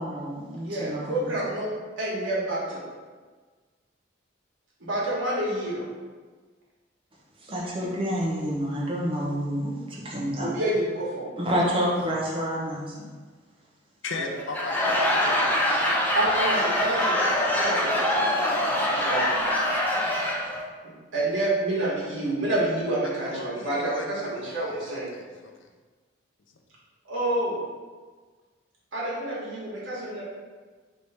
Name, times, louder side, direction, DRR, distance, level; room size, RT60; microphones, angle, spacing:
voice 1, 0.0-1.4 7.4-10.5 11.4-12.9, equal, 25° right, -5 dB, 0.8 m, -28 dB
voice 2, 0.6-1.7 2.0-2.9 4.8-5.9 10.4-11.3 14.2-14.3 15.8-17.2 17.5-17.9 18.6-19.2 21.1-25.1 27.0-27.6 28.9-30.2, right 1 dB, 70° right, -6 dB, 1.5 m, -28 dB
voice 3, 14.0-15.7 17.3-17.8 23.2-25.5, left 3 dB, 65° left, 3 dB, 0.5 m, -38 dB
Laughter / Crowd, 14.4-20.6, left 1 dB, 10° left, 0.4 m, -24 dB
3.3 x 3.2 x 4.2 m, 1.4 s
head